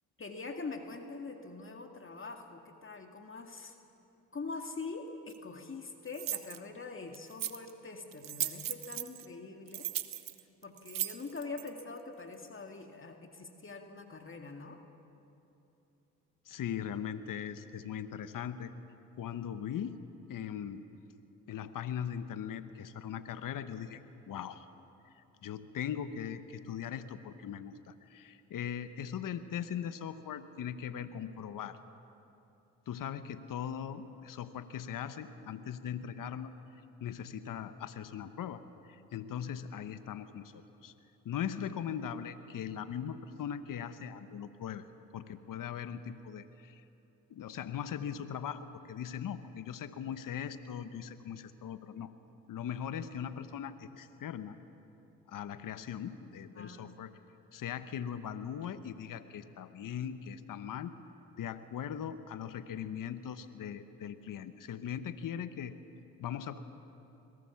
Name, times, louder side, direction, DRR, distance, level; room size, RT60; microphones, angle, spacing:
voice 1, 0.2-3.7 4.3-9.9 10.6-14.8 56.6-57.0, left 3 dB, 35° left, 4 dB, 2.0 m, -44 dB
sound 1, 5.3-5.4 6.1-6.6 7.1-7.7 8.1-9.3 9.7-11.8, right 12 dB, 60° right, 1.0 m, -37 dB
voice 2, 16.4-18.7 19.2-20.0 20.3-20.8 21.5-24.0 24.3-24.7 25.0-31.8 32.9-40.9 41.2-44.8 45.1-46.8 47.3-52.1 52.5-54.6 55.3-57.1 57.5-60.9 61.4-65.7 66.2-66.6, left 8 dB, 60° left, 12 dB, 1.1 m, -40 dB
22.0 x 17.5 x 7.1 m, 2.8 s
supercardioid pair, 60°, 37 cm